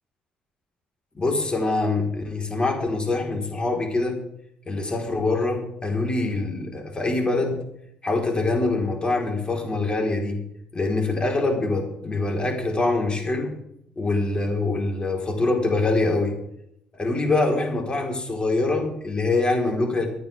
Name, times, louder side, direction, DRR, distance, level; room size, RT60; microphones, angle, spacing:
voice 1, 1.1-4.2 4.7-7.6 8.0-10.4 10.7-13.5 14.0-16.4 16.9-20.1, left 2 dB, 30° left, 1 dB, 4.4 m, -24 dB
24.0 x 9.5 x 3.7 m, 0.76 s
supercardioid pair, 65°, 4 cm